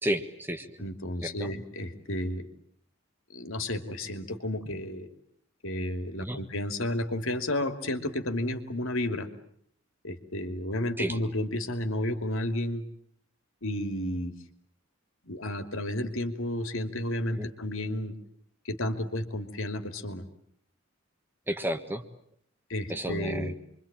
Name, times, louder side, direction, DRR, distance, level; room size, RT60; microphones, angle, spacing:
voice 1, 0.0-0.7 1.2-1.5 6.2-6.4 11.0-11.1 17.4-17.5 21.5-22.0 22.9-23.5, equal, 10° right, 7 dB, 1.5 m, -31 dB
voice 2, 0.8-2.5 3.3-5.1 5.6-9.3 10.0-12.8 13.6-14.3 15.3-18.1 18.6-20.2 22.7-23.5, left 1 dB, 70° left, 7 dB, 2.8 m, -32 dB
27.5 x 24.0 x 9.0 m, 0.65 s
head